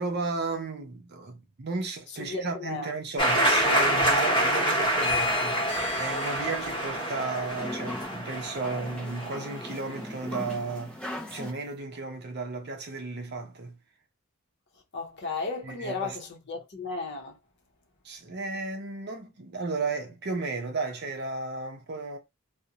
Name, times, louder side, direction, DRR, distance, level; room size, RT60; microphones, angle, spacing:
voice 1, 0.0-11.0 11.3-13.8 15.6-16.2 18.0-22.2, right 3 dB, 50° right, 0.6 m, -34 dB
voice 2, 2.2-2.9 14.9-17.4, left 3 dB, 50° left, 0.7 m, -34 dB
sound 1, 3.2-9.8, right 1 dB, 20° left, 0.9 m, -27 dB
sound 2, 4.9-11.5, left 3 dB, 5° left, 0.3 m, -37 dB
2.5 x 2.1 x 2.7 m
head